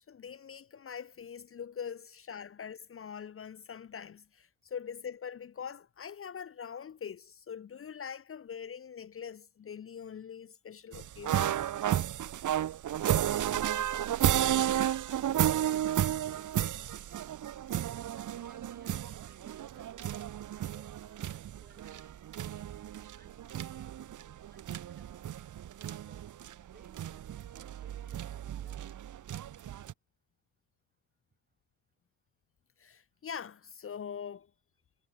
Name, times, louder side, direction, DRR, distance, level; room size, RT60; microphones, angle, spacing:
voice 1, 0.1-11.5 32.8-34.5, left 7 dB, 35° left, 0.6 m, -43 dB
sound 1, 10.9-29.9, right 11 dB, 50° right, 0.8 m, -33 dB
voice 2, 15.0-17.5 18.0-20.2 20.5-24.0 24.5-25.3 25.9-29.0, right 3 dB, 25° right, 6.8 m, -64 dB
cardioid pair, 90°, 40 cm